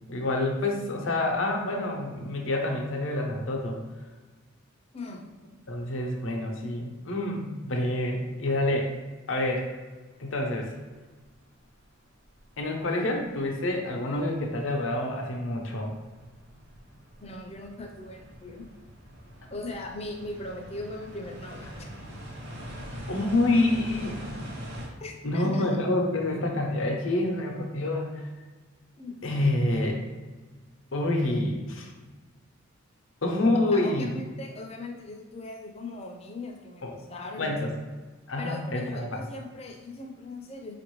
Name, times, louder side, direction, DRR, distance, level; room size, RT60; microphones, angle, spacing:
voice 1, 0.1-3.8 5.7-8.9 9.3-9.7 10.2-10.7 12.6-15.9 23.1-24.2 25.2-28.3 29.2-29.9 30.9-31.9 33.2-34.2 36.8-36.9 37.4-37.7 38.3-39.2, left 2 dB, 70° left, 2 dB, 0.7 m, -27 dB
voice 2, 4.9-5.2 8.5-8.6 17.2-18.7 19.5-21.9 25.0-25.7 29.0-29.5 33.7-37.7 38.4-40.8, left 2 dB, 30° left, 2 dB, 0.5 m, -39 dB
sound 1, 10.8-10.9 11.6-11.7 12.2-12.8 13.2-24.9, equal, 55° right, 0.8 m, -43 dB
5.0 x 2.5 x 3.1 m, 1.3 s
head